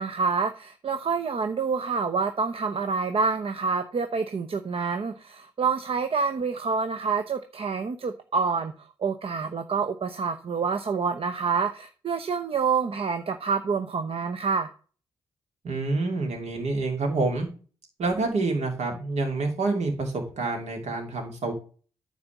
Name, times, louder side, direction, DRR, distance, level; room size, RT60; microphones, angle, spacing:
voice 1, 0.0-8.7 9.0-14.7, right 5 dB, 50° right, 8 dB, 0.9 m, -27 dB
voice 2, 15.6-17.5 18.0-21.5, right 3 dB, 70° right, 3 dB, 2.9 m, -27 dB
9.6 x 4.1 x 7.2 m, 0.39 s
hypercardioid pair, 40°, 12 cm